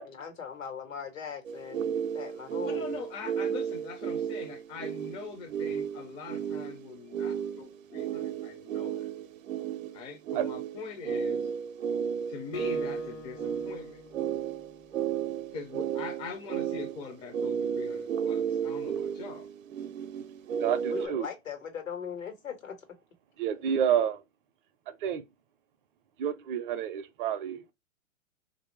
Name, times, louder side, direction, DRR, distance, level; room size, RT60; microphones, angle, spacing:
voice 1, 0.0-3.0 20.9-22.8, left 7 dB, 85° left, 1.4 m, -39 dB
sound 1, 1.4-21.1, right 8 dB, 85° right, 0.6 m, -33 dB
voice 2, 2.6-9.1 9.9-11.4 12.3-14.0 15.5-19.5, left 4 dB, 15° left, 0.4 m, -42 dB
Acoustic guitar, 12.5-15.3, left 3 dB, 55° left, 0.9 m, -48 dB
voice 3, 20.6-21.3 23.4-24.2 25.0-25.2 26.2-27.7, right 9 dB, 40° right, 0.5 m, -29 dB
3.2 x 2.6 x 3.0 m
hypercardioid pair, 120°, 39 cm